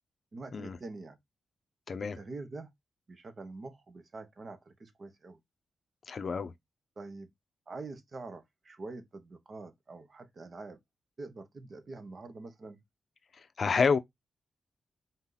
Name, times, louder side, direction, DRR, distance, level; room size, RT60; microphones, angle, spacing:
voice 1, 0.3-1.2 2.0-2.7 3.1-5.4 7.0-7.3 7.7-10.8 11.2-12.8, right 3 dB, 50° right, 1.0 m, -45 dB
voice 2, 6.1-6.5 13.6-14.0, left 5 dB, 55° left, 0.5 m, -28 dB
4.0 x 2.9 x 3.8 m
cardioid pair, 80°, 0 cm